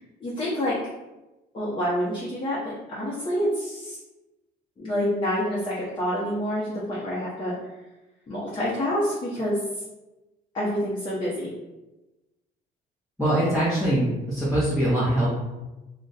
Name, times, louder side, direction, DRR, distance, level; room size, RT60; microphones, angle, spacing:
voice 1, 0.2-0.8 1.5-4.0 4.8-7.5 8.3-9.6 10.5-11.5, equal, 30° left, -8 dB, 0.8 m, -27 dB
voice 2, 13.2-15.3, right 1 dB, ahead, -10 dB, 0.9 m, -23 dB
2.4 x 2.2 x 3.9 m, 1.0 s
cardioid pair, 110°, 17 cm